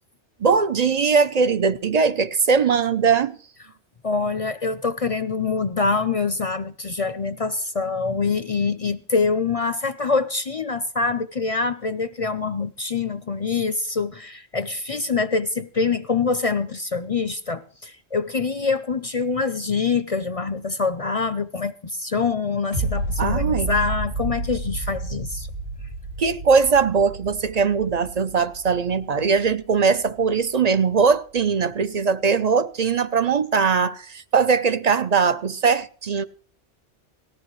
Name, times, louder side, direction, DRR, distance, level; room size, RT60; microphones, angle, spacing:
voice 1, 0.4-3.4 23.2-23.7 26.2-36.2, right 5 dB, 40° right, 0.7 m, -20 dB
voice 2, 4.0-25.5, left 4 dB, 40° left, 0.6 m, -25 dB
sound 1, 22.7-29.8 30.2-30.3, right 1 dB, 75° right, 8.5 m, -30 dB
18.5 x 14.5 x 3.2 m
omnidirectional pair, 1.2 m